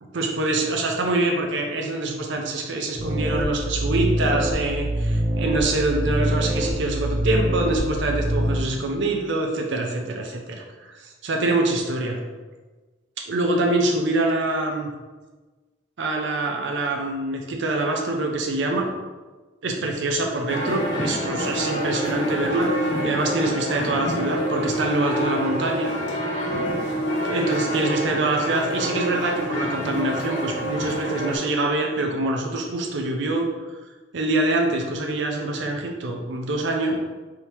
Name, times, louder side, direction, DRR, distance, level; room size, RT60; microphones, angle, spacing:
voice 1, 0.1-12.2 13.3-14.9 16.0-18.9 19.6-22.7 23.0-25.9 27.2-33.5 34.1-37.0, right 2 dB, 75° right, 1 dB, 0.5 m, -25 dB
sound 1, 3.0-8.6, right 1 dB, 40° right, 0.7 m, -25 dB
sound 2, 20.5-31.4, equal, 65° left, 1.3 m, -27 dB
3.6 x 2.8 x 4.4 m, 1.3 s
head